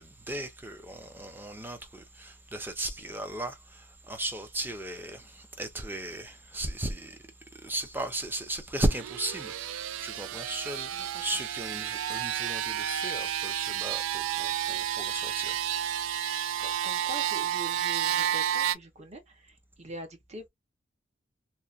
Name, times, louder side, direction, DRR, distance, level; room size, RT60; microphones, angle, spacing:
voice 1, 0.0-7.2 7.6-16.0, right 1 dB, 10° right, 0.5 m, -36 dB
sound 1, 8.8-18.8, right 10 dB, 80° right, 0.3 m, -31 dB
voice 2, 16.6-20.5, right 1 dB, 35° right, 0.8 m, -44 dB
2.8 x 2.1 x 2.4 m
head